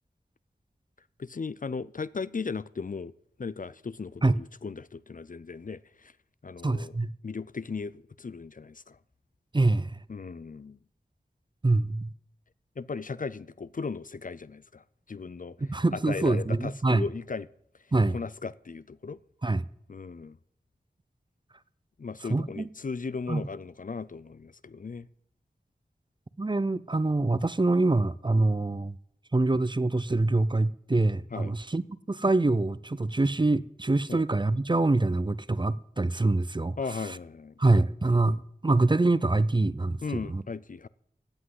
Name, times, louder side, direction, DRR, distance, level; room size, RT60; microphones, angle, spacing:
voice 1, 1.2-3.1 3.4-6.1 6.4-7.0 7.2-9.0 10.1-10.8 12.8-15.6 15.9-17.5 18.1-19.2 19.9-20.4 22.0-25.1 31.3-31.5 34.1-34.2 36.8-37.5 38.3-38.4 40.0-40.9, left 4 dB, 50° left, 0.5 m, -37 dB
voice 2, 6.6-7.1 9.5-10.0 11.6-12.1 15.6-17.1 17.9-18.2 19.4-19.6 22.3-22.6 23.3-23.4 26.4-29.0 29.3-36.8 37.6-38.4 38.6-40.4, right 2 dB, 25° right, 0.5 m, -25 dB
16.0 x 6.0 x 9.6 m
wide cardioid pair, 60°, 18 cm